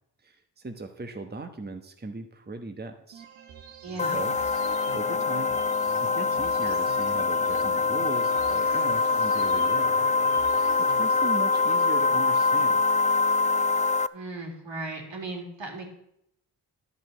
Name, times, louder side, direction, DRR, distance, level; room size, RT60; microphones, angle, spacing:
voice 1, 0.2-3.2 4.1-5.5 6.0-10.0 10.5-12.8, right 3 dB, 20° right, 5 dB, 1.2 m, -38 dB
sound 1, 3.1-11.1, right 7 dB, 85° right, 1.2 m, -46 dB
voice 2, 3.8-4.2 14.1-15.8, right 2 dB, 70° right, 1 dB, 3.1 m, -36 dB
sound 2, 4.0-14.1, left 4 dB, 20° left, 0.3 m, -24 dB
11.0 x 5.5 x 7.7 m, 0.77 s
supercardioid pair, 50°, 45 cm